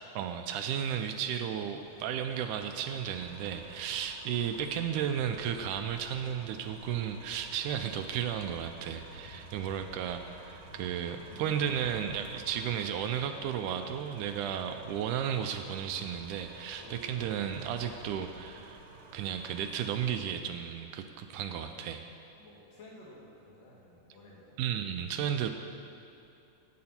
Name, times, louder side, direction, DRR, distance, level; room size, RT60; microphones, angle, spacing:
voice 1, 0.2-18.8 19.1-22.1 24.6-25.5, right 9 dB, 80° right, 7 dB, 2.0 m, -34 dB
sound 1, 1.4-20.2, right 4 dB, 60° right, 1.7 m, -52 dB
voice 2, 3.6-4.0 16.7-17.4 22.3-24.6, left 1 dB, 80° left, -4 dB, 3.7 m, -53 dB
Accelerating revving vroom, 7.0-14.4, left 2 dB, 55° left, 3.6 m, -55 dB
12.5 x 9.6 x 4.3 m, 2.5 s
omnidirectional pair, 3.7 m